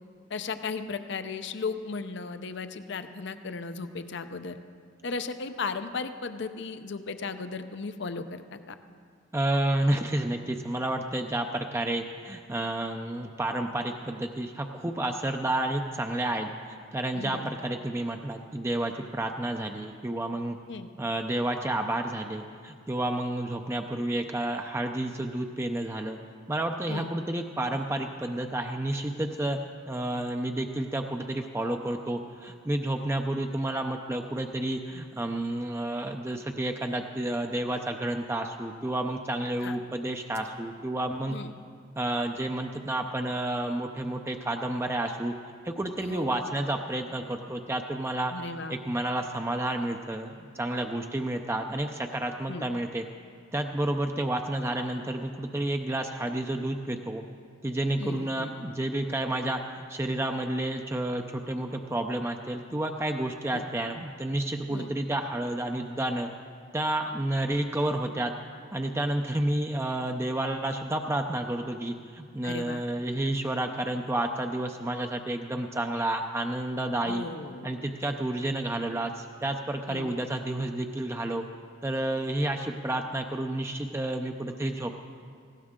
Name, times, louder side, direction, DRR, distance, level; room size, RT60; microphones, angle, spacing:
voice 1, 0.3-4.6 5.0-8.7 17.1-17.5 20.7-20.9 26.9-27.1 39.6-39.8 41.3-41.5 46.0-46.3 48.3-48.8 52.5-52.6 58.0-58.5 63.5-63.6 64.7-64.9 72.4-72.8 77.0-77.7 79.9-80.2, left 4 dB, 65° left, 10 dB, 0.7 m, -36 dB
voice 2, 9.3-16.5 16.9-20.6 21.0-26.2 26.5-29.6 29.9-41.4 42.0-45.3 45.6-48.3 48.7-53.0 53.5-57.2 57.6-66.3 66.7-68.3 68.7-77.2 77.6-81.4 81.8-85.0, right 1 dB, 15° right, 4 dB, 0.5 m, -30 dB
18.5 x 16.5 x 3.7 m, 2.2 s
head